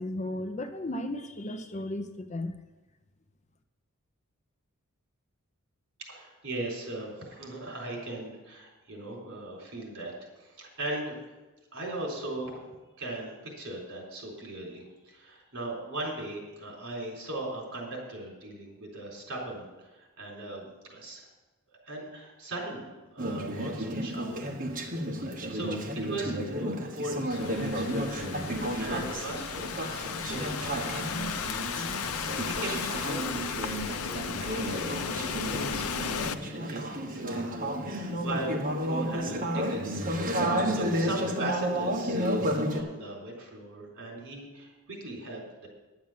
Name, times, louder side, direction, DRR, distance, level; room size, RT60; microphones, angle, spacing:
voice 1, 0.0-2.5, left 1 dB, 30° left, 8 dB, 0.6 m, -35 dB
voice 2, 6.0-10.1 10.4-11.2 11.7-12.6 13.0-21.3 21.8-24.5 25.2-31.8 32.1-37.4 37.8-40.0 40.3-45.7, right 2 dB, 60° right, -1 dB, 4.1 m, -39 dB
Conversation / Chatter, 23.2-42.8, equal, 40° right, 1.3 m, -32 dB
Thunderstorm / Rain, 27.3-36.3, left 6 dB, 85° left, 0.7 m, -35 dB
10.5 x 7.3 x 7.4 m, 1.2 s
head